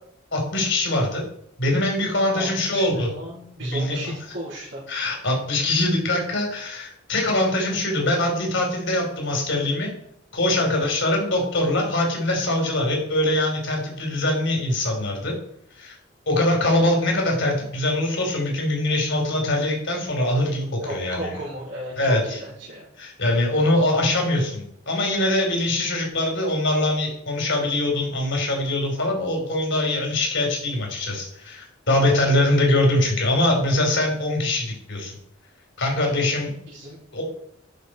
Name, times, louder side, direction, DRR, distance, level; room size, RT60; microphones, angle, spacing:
voice 1, 0.3-1.2 1.6-3.1 3.6-4.1 4.9-9.9 10.3-15.3 15.8-16.0 16.3-21.3 22.0-22.4 23.0-35.2 35.8-36.5 37.1-37.2, left 1 dB, 60° left, 1 dB, 3.6 m, -23 dB
voice 2, 2.3-4.8 10.7-10.8 20.8-22.9 36.7-37.0, right 1 dB, 60° right, -10 dB, 4.0 m, -35 dB
11.5 x 6.5 x 4.4 m, 0.70 s
head